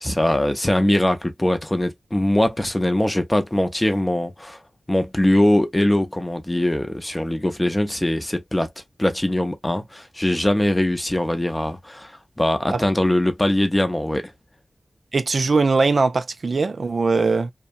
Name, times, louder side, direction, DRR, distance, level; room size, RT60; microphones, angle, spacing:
voice 1, 0.0-4.6 4.9-8.7 9.0-14.3, left 1 dB, 15° left, 0.5 m, -21 dB
voice 2, 15.1-17.5, right 3 dB, 60° right, 0.4 m, -20 dB
2.7 x 2.2 x 2.5 m
wide cardioid pair, 90°, 0 cm